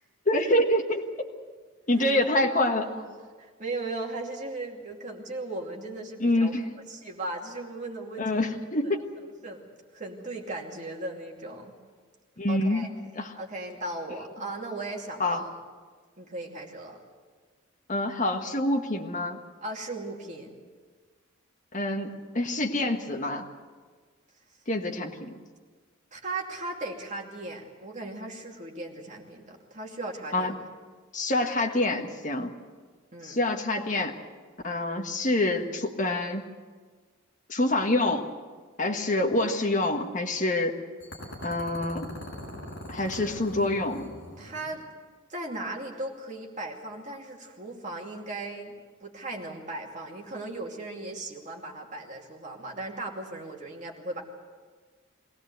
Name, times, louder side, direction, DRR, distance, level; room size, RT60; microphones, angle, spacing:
voice 1, 0.2-1.1 1.9-2.9 6.2-6.7 8.2-9.0 12.4-12.9 13.1-13.4 15.2-15.4 17.9-19.4 21.7-23.5 24.7-25.3 30.3-30.5 31.1-32.5 33.2-34.1 34.6-36.4 37.5-38.2 38.8-40.8 41.4-42.1 42.9-44.1, left 1 dB, 40° left, 2 dB, 1.5 m, -26 dB
voice 2, 1.9-2.3 2.7-3.1 3.4-6.6 6.9-8.3 9.4-11.7 12.5-12.9 13.4-15.5 16.2-17.0 19.6-20.6 26.1-30.6 33.1-33.4 44.4-44.8 45.3-54.2, right 2 dB, 35° right, 0 dB, 2.6 m, -37 dB
sound 1, 41.0-44.8, left 1 dB, 55° left, 6.3 m, -42 dB
23.5 x 17.0 x 8.1 m, 1.5 s
head